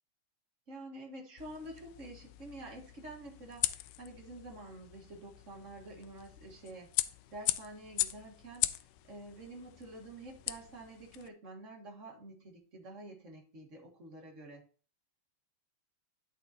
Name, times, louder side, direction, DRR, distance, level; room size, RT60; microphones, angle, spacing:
voice 1, 0.7-6.9 7.3-8.8 9.1-14.6, right 1 dB, 35° right, 0 dB, 1.3 m, -48 dB
sound 1, 1.4-11.3, left 17 dB, 90° left, 2.1 m, -39 dB
11.5 x 5.3 x 2.8 m, 0.39 s
omnidirectional pair, 3.6 m